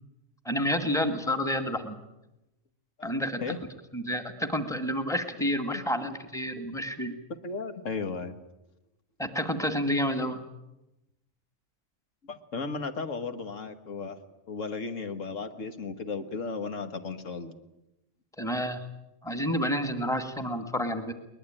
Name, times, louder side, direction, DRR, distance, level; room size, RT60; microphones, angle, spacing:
voice 1, 0.4-2.0 3.0-3.4 3.9-7.1 9.2-10.4 18.4-18.8 19.2-21.1, equal, 5° left, 6 dB, 1.7 m, -29 dB
voice 2, 3.0-3.6 5.7-6.1 7.4-8.4 12.2-14.2 14.5-17.5, left 4 dB, 75° left, 8 dB, 1.8 m, -35 dB
22.0 x 20.5 x 8.9 m, 0.93 s
omnidirectional pair, 1.3 m